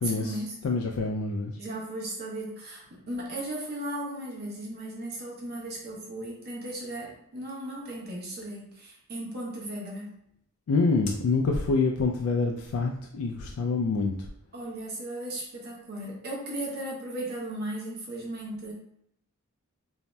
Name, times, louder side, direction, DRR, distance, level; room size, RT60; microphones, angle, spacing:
voice 1, 0.0-1.6 10.7-14.3, left 3 dB, 70° left, 1 dB, 0.3 m, -27 dB
voice 2, 1.5-10.1 14.5-18.7, right 1 dB, 45° right, -3 dB, 0.8 m, -36 dB
2.6 x 2.1 x 3.2 m, 0.73 s
head